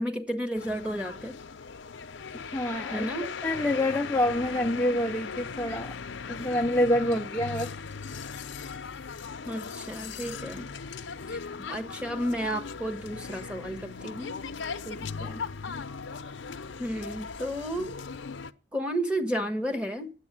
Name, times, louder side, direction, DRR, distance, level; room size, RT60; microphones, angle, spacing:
voice 1, 0.0-1.4 2.9-3.3 7.1-7.2 9.5-10.7 11.3-14.4 16.8-18.0 18.7-20.1, equal, 5° right, 1.4 m, -32 dB
sound 1, 0.6-18.5, left 5 dB, 80° left, 0.7 m, -38 dB
voice 2, 2.3-5.9 6.3-7.7 14.9-15.4, left 1 dB, 10° left, 0.6 m, -28 dB
9.9 x 8.2 x 9.8 m
head